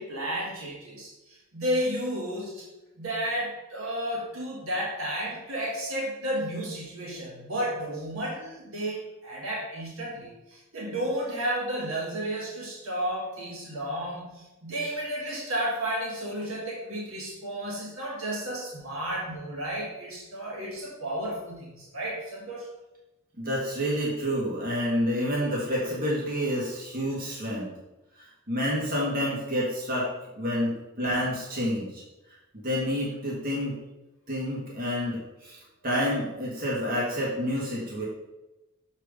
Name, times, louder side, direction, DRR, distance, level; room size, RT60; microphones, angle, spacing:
voice 1, 0.0-2.6 3.0-22.7, right 1 dB, 85° right, -3 dB, 1.5 m, -32 dB
voice 2, 23.4-27.7 28.2-30.1 30.4-32.0 32.5-33.8 34.3-35.6 35.8-38.0, equal, 45° right, -5 dB, 1.8 m, -29 dB
6.7 x 4.6 x 5.0 m, 1.0 s
head